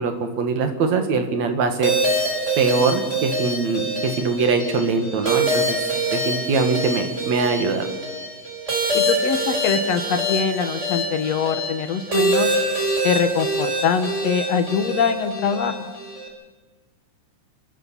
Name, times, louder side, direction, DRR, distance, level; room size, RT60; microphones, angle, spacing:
voice 1, 0.0-1.9 2.6-7.9, right 4 dB, 70° right, 6 dB, 3.0 m, -22 dB
sound 1, 1.8-16.3, right 1 dB, 25° right, 4.1 m, -25 dB
voice 2, 8.9-12.5 13.0-15.9, left 6 dB, 65° left, 9 dB, 2.1 m, -23 dB
29.0 x 13.5 x 7.0 m, 1.3 s
omnidirectional pair, 3.4 m